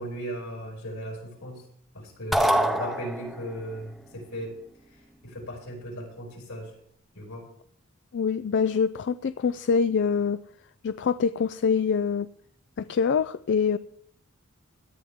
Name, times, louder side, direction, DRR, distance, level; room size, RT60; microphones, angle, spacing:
voice 1, 0.0-1.6 1.9-4.6 5.2-6.7 7.1-7.5, right 1 dB, 75° left, -1 dB, 5.2 m, -37 dB
sound 1, 2.3-3.6, equal, ahead, 0.7 m, -24 dB
voice 2, 8.1-10.4 10.8-12.3 12.8-13.8, left 6 dB, 55° left, 13 dB, 0.4 m, -25 dB
17.0 x 10.5 x 3.6 m, 0.66 s
head